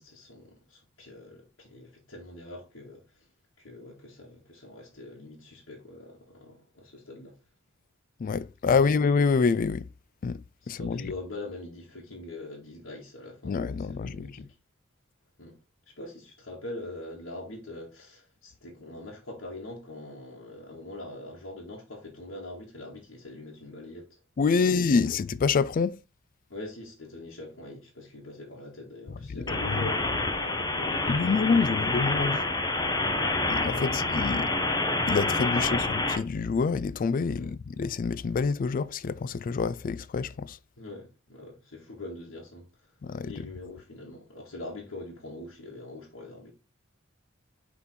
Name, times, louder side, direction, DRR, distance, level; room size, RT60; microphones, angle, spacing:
voice 1, 0.0-3.3 3.6-7.4 10.6-14.5 15.4-15.6 16.0-24.2 24.5-25.1 26.5-31.8 33.1-34.4 35.5-35.8 37.4-37.5 40.8-42.7 43.3-46.5, left 2 dB, 90° left, 1.9 m, -43 dB
voice 2, 8.2-9.9 10.2-11.1 13.4-14.5 24.4-26.0 29.3-29.4 29.8-29.9 31.1-32.5 33.5-34.5 35.1-40.6 43.0-43.5, left 5 dB, 45° left, 0.3 m, -27 dB
sound 1, 29.5-36.2, left 2 dB, 20° left, 0.9 m, -28 dB
5.9 x 3.9 x 4.3 m
head